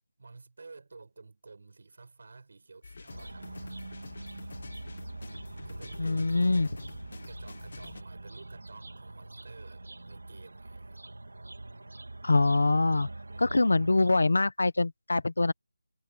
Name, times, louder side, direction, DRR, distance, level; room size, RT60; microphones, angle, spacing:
voice 1, 0.2-3.5 5.6-6.7 7.3-11.0 13.3-13.5, right 3 dB, 50° right, 7.0 m, -52 dB
sound 1, 2.8-8.0, left 4 dB, 45° left, 1.7 m, -47 dB
sound 2, 3.1-14.1, right 2 dB, 85° right, 3.5 m, -44 dB
voice 2, 6.0-6.7 12.2-13.1 13.4-15.5, left 3 dB, 75° left, 1.1 m, -24 dB
figure-of-eight pair, 175°, 0 cm